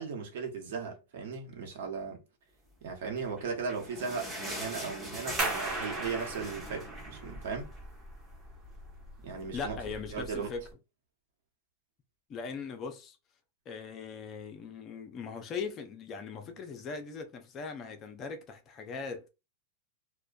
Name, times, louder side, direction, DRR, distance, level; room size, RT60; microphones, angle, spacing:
voice 1, 0.0-2.2 2.8-7.7 9.2-9.8 10.1-10.5, right 5 dB, 70° right, 0.9 m, -37 dB
sound 1, 3.2-8.0 8.3-8.4 8.7-8.9 9.6-9.7, equal, 5° right, 1.0 m, -42 dB
sound 2, 5.4-10.7, right 2 dB, 25° right, 1.3 m, -38 dB
voice 2, 9.5-10.7 12.3-13.2 13.7-19.3, left 5 dB, 30° left, 0.5 m, -40 dB
2.5 x 2.1 x 2.3 m
supercardioid pair, 140°, 0 cm